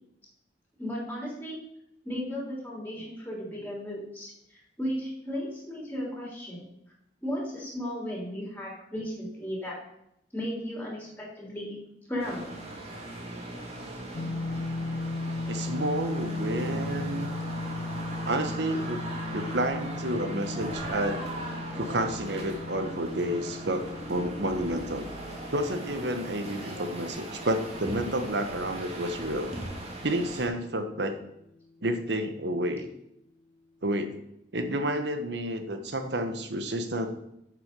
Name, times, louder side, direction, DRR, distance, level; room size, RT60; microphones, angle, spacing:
voice 1, 0.8-1.6 2.0-6.7 7.2-9.7 10.3-11.8 12.1-12.4, equal, 10° left, -3 dB, 3.2 m, -35 dB
sound 1, 12.2-30.5, right 1 dB, 35° right, 2.2 m, -39 dB
sound 2, 14.1-30.1, left 2 dB, 45° left, 0.3 m, -38 dB
voice 2, 15.5-17.3 18.2-19.0 19.3-21.2 21.8-25.1 25.5-29.5 30.0-31.2 31.8-32.9 33.8-34.1 34.5-37.1, right 1 dB, 70° right, 7 dB, 1.1 m, -30 dB
8.1 x 7.0 x 5.2 m, 0.79 s
head